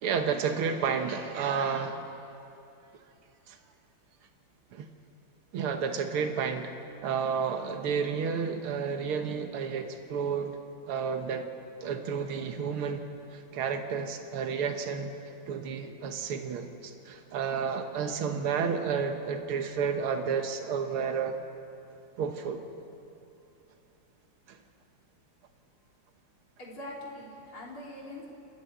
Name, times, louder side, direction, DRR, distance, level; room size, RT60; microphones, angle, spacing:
voice 1, 0.0-2.1 3.5-3.6 4.7-4.9 5.5-6.7 7.0-10.6 10.9-11.5 11.8-13.0 13.3-15.1 15.5-21.4 22.2-22.6 24.5-24.6, right 6 dB, 85° right, 6 dB, 2.1 m, -31 dB
voice 2, 26.6-28.3, left 1 dB, 75° left, -2 dB, 4.3 m, -42 dB
29.5 x 12.5 x 9.4 m, 2.7 s
omnidirectional pair, 2.4 m